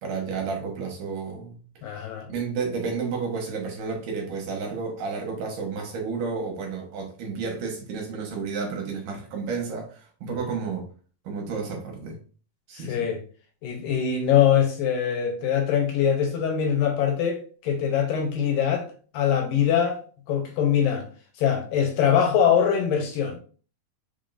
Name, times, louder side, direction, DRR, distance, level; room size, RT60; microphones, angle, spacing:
voice 1, 0.0-1.6 2.3-10.8 11.2-12.2 12.7-13.1, right 5 dB, 70° right, 2.7 m, -31 dB
voice 2, 1.8-2.3 12.8-13.2 13.6-18.9 19.1-20.0 20.3-21.1 21.4-23.4, left 8 dB, 80° left, 2.6 m, -23 dB
5.7 x 3.7 x 2.5 m
omnidirectional pair, 4.0 m